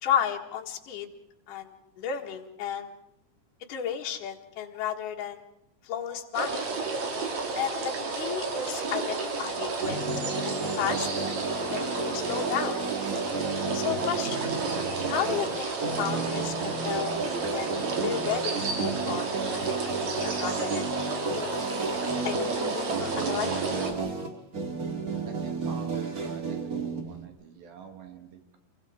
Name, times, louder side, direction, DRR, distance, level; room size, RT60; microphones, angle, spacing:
voice 1, 0.0-1.1 1.5-2.9 3.7-5.4 5.8-6.6 7.6-11.4 11.7-12.8 13.7-14.5 15.1-17.2 17.5-21.6 22.2-22.5 22.7-23.7, left 9 dB, 65° left, 1 dB, 3.2 m, -33 dB
sound 1, 6.3-23.9, right 4 dB, 50° right, 3.7 m, -31 dB
sound 2, 9.8-27.2, right 3 dB, 30° right, 1.8 m, -33 dB
voice 2, 25.3-28.6, right 6 dB, 80° right, 5 dB, 4.2 m, -46 dB
27.0 x 24.0 x 5.1 m, 0.83 s
omnidirectional pair, 4.2 m